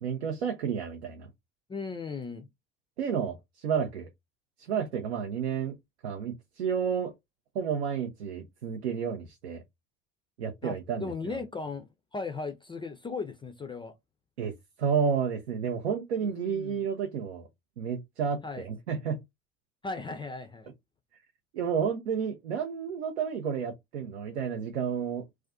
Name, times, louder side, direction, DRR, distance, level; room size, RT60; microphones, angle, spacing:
voice 1, 0.0-1.3 3.0-4.1 4.6-5.8 6.0-7.1 7.5-9.6 10.4-11.4 14.4-17.5 17.8-19.2 21.5-25.2, right 7 dB, 85° right, 0.5 m, -31 dB
voice 2, 1.7-2.5 10.6-14.0 16.2-16.8 18.4-18.6 19.8-20.7, left 4 dB, 15° left, 0.3 m, -37 dB
2.4 x 2.2 x 2.4 m
hypercardioid pair, 60°, 33 cm